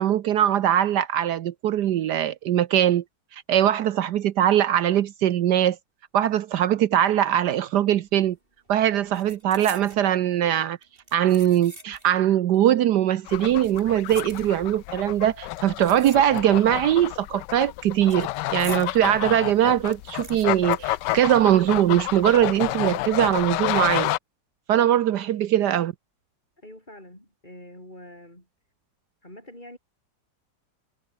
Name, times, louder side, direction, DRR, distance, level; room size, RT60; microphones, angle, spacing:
voice 1, 0.0-3.0 3.3-5.8 6.1-8.4 8.7-10.8 11.1-24.1 24.7-25.9, right 11 dB, 70° right, 1.3 m, -21 dB
sound 1, 8.1-8.4 8.7-10.1 10.8-12.2 12.5-12.6 13.4-14.9 15.5-16.7 17.0-19.0 19.4-19.5 19.7-21.8 22.0-22.1 22.8-23.3 23.7-23.9, right 1 dB, 30° right, 6.5 m, -45 dB
sound 2, 13.3-24.2, left 16 dB, 80° left, 1.2 m, -30 dB
voice 2, 26.6-28.5 29.2-29.8, left 1 dB, 25° left, 7.4 m, -45 dB
omnidirectional pair, 1.9 m